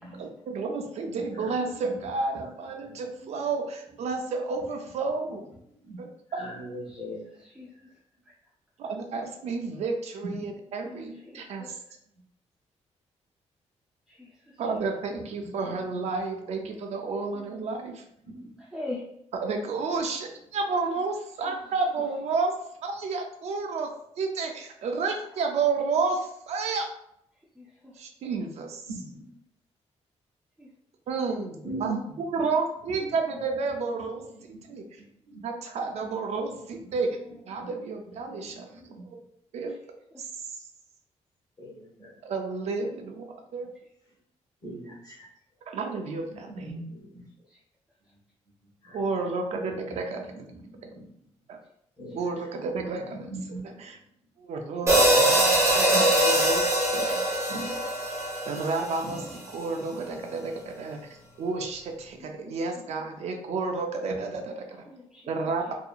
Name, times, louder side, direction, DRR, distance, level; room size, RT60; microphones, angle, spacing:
voice 1, 0.2-5.4 6.0-6.4 8.8-11.8 14.6-18.0 19.4-22.5 22.8-23.9 24.2-26.9 28.0-28.8 31.1-32.0 32.3-34.2 34.7-34.8 35.4-37.1 37.5-38.7 39.0-39.2 39.5-39.8 40.2-40.3 42.2-43.2 43.5-43.7 45.7-46.7 48.9-50.2 51.5-51.6 52.2-53.1 53.8-54.0 54.4-55.0 55.2-56.7 56.9-57.1 58.4-59.2 59.5-64.8 65.3-65.7, right 4 dB, 65° right, 3 dB, 0.4 m, -31 dB
voice 2, 1.2-2.0 2.4-3.3 5.7-6.0 6.3-7.3 10.2-10.5 15.1-15.8 18.2-18.5 28.9-29.3 31.6-32.5 33.0-33.1 34.3-35.4 36.8-36.9 37.5-37.7 38.2-39.0 41.6-42.2 44.6-45.3 46.4-47.3 48.8-49.2 49.5-51.0 52.0-52.2 52.7-53.8 55.1-56.0 57.1-57.7 59.0-59.3 60.1-60.4 63.1-63.5 64.3-64.4, right 2 dB, 30° left, -4 dB, 1.0 m, -41 dB
voice 3, 11.3-11.7 14.2-14.3 17.4-17.6 18.7-19.0 27.6-27.9 30.6-30.7 62.4-62.5 64.9-65.2, left 2 dB, 5° right, -5 dB, 0.4 m, -40 dB
sound 1, 54.9-59.2, right 1 dB, 25° right, 0.8 m, -22 dB
2.7 x 2.6 x 2.3 m, 0.75 s
wide cardioid pair, 160°, 12 cm